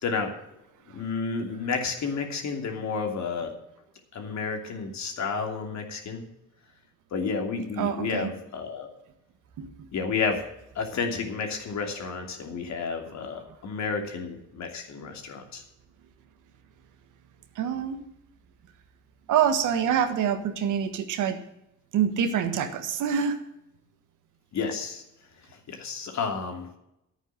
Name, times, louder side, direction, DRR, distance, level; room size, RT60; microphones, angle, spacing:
voice 1, 0.0-0.4 0.9-3.5 4.1-6.2 7.1-8.9 9.9-10.4 10.7-15.6 24.5-25.0 25.7-26.7, left 5 dB, 65° left, 3 dB, 2.9 m, -31 dB
voice 2, 7.8-8.3 9.6-9.7 17.6-18.0 19.3-21.4 21.9-23.4, right 8 dB, 85° right, 8 dB, 1.6 m, -26 dB
11.0 x 9.0 x 7.6 m, 0.83 s
cardioid pair, 90°, 30 cm